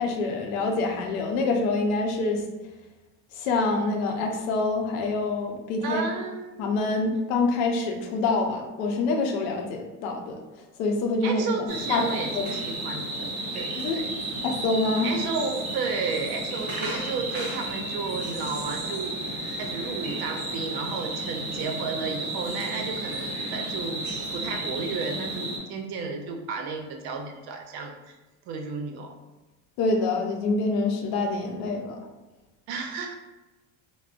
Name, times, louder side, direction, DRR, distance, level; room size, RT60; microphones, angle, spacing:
voice 1, 0.0-2.4 3.3-6.0 6.6-10.4 10.8-12.6 13.8-14.0 14.4-15.1 29.8-32.0, left 3 dB, 80° left, 3 dB, 0.6 m, -26 dB
voice 2, 5.8-6.7 11.2-14.1 15.0-28.2 28.5-29.1 32.7-33.2, right 4 dB, 60° right, 3 dB, 0.6 m, -33 dB
sound 1, 11.7-25.6, right 2 dB, 30° right, 1.2 m, -33 dB
3.5 x 2.0 x 2.4 m, 1.1 s
supercardioid pair, 85°, 43 cm